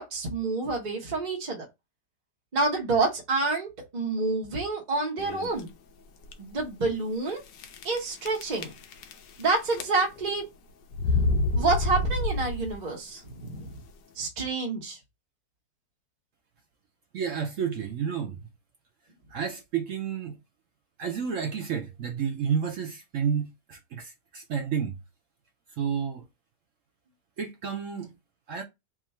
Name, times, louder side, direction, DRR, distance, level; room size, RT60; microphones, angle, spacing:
voice 1, 0.0-1.6 2.5-5.7 6.4-7.4 7.8-8.7 9.4-10.5 11.5-13.7 14.2-15.0, right 3 dB, 40° right, 0.7 m, -28 dB
sound 1, 5.2-5.6 6.2-6.3 6.6-6.7 7.6-8.0 8.3-9.4 9.7-10.3 10.9-12.9, left 2 dB, 85° left, 1.4 m, -27 dB
voice 2, 17.1-18.4 19.3-20.4 21.0-24.9 25.8-26.2 27.4-28.1 28.5-28.6, right 7 dB, 70° right, 0.7 m, -30 dB
3.7 x 2.4 x 4.1 m
omnidirectional pair, 1.9 m